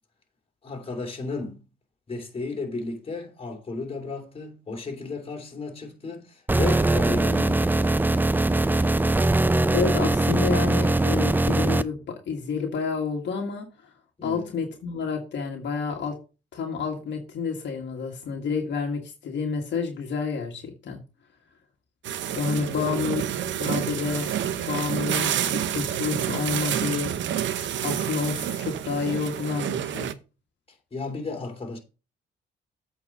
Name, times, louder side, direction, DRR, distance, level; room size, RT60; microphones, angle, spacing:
voice 1, 0.6-1.6 2.1-7.6 14.2-14.5 22.6-23.2 30.9-31.8, left 3 dB, 30° left, 2.9 m, -33 dB
sound 1, 6.5-11.8, right 2 dB, 10° right, 0.5 m, -21 dB
voice 2, 9.7-13.7 14.2-16.2 16.5-21.0 22.3-23.2 23.6-24.3 24.7-27.1 27.8-30.1, left 5 dB, 65° left, 1.8 m, -29 dB
sound 2, 22.0-30.1, right 10 dB, 70° right, 0.8 m, -28 dB
8.2 x 4.6 x 5.3 m
cardioid pair, 90°, 20 cm